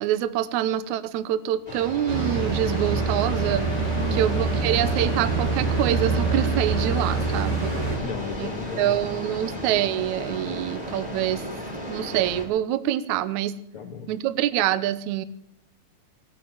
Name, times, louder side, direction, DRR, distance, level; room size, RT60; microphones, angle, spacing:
voice 1, 0.0-3.7 4.1-7.8 8.4-8.5 8.8-11.5 11.9-13.6 14.1-15.3, right 12 dB, 80° right, 15 dB, 1.7 m, -25 dB
sound 1, 1.7-12.5, equal, 10° left, 3.9 m, -35 dB
sound 2, 2.1-8.0, right 4 dB, 25° right, 4.5 m, -25 dB
voice 2, 3.9-4.3 8.0-9.5 13.7-14.1, left 5 dB, 55° left, 0 dB, 2.7 m, -36 dB
18.5 x 9.9 x 7.4 m, 0.75 s
omnidirectional pair, 4.6 m